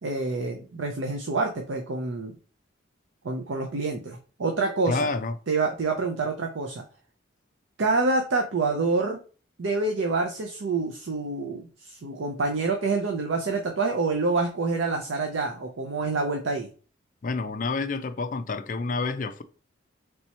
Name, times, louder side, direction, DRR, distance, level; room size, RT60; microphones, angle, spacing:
voice 1, 0.0-2.3 3.2-5.1 5.5-6.8 7.8-9.2 9.6-16.7, right 3 dB, 80° right, 0.6 m, -27 dB
voice 2, 4.9-5.3 17.2-19.4, left 3 dB, 45° left, 0.4 m, -28 dB
3.4 x 2.9 x 4.2 m
head